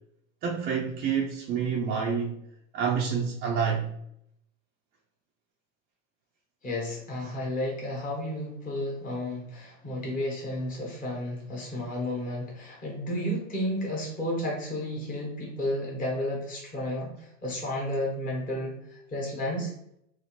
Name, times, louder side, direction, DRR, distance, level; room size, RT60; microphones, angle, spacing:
voice 1, 0.4-2.4 2.7-3.9, right 6 dB, 25° right, 0.4 m, -28 dB
voice 2, 6.6-19.7, left 1 dB, 20° left, 1.0 m, -32 dB
2.6 x 2.5 x 3.0 m
hypercardioid pair, 115°, 40 cm